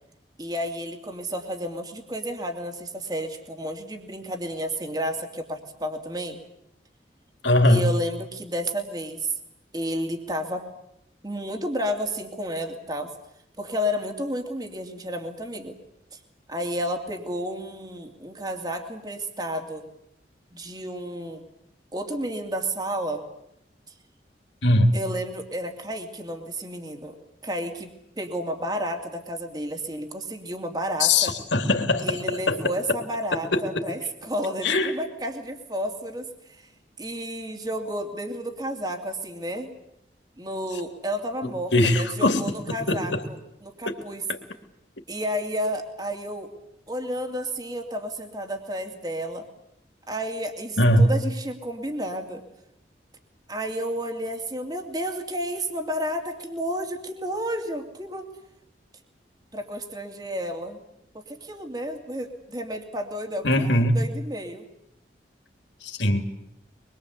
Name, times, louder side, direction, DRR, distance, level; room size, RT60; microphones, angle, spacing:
voice 1, 0.4-6.4 7.6-9.3 9.7-10.7 11.2-13.1 13.6-15.7 16.1-16.2 16.5-19.9 20.5-21.4 21.9-23.2 24.9-27.2 27.4-27.9 28.2-31.3 32.0-36.7 37.0-39.7 40.4-43.4 43.6-44.2 45.1-46.5 46.9-49.5 50.1-52.4 53.5-58.3 59.5-60.8 61.1-64.7, equal, 20° right, 4 dB, 2.8 m, -31 dB
voice 2, 7.4-7.9 24.6-24.9 31.0-32.2 32.5-32.6 33.5-33.6 34.6-34.9 41.7-42.5 42.9-43.2 43.9-44.0 50.8-51.1 63.4-64.0 65.8-66.2, left 1 dB, 85° left, 5 dB, 3.2 m, -20 dB
24.0 x 23.0 x 8.3 m, 0.80 s
head